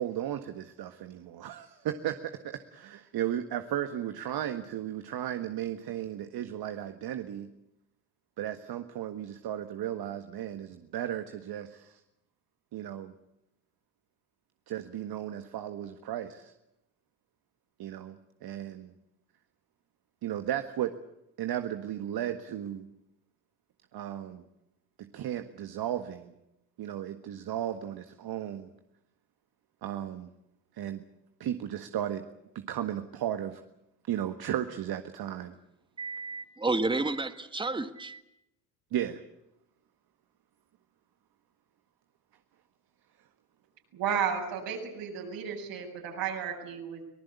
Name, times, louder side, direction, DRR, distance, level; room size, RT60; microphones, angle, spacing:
voice 1, 0.0-7.5 8.4-12.0 12.7-13.1 14.7-16.5 17.8-18.9 20.2-20.9 21.4-22.9 23.9-24.4 25.0-26.3 26.8-28.7 29.8-30.3 30.7-31.0 31.4-32.2 32.5-33.6 34.1-35.5 38.9-39.2, right 11 dB, 45° right, 8 dB, 1.7 m, -35 dB
voice 2, 36.0-38.2, right 3 dB, 10° right, 10 dB, 1.6 m, -31 dB
voice 3, 43.9-47.0, right 7 dB, 60° right, 0 dB, 7.9 m, -33 dB
24.5 x 19.0 x 8.4 m, 0.86 s
hypercardioid pair, 75°, 49 cm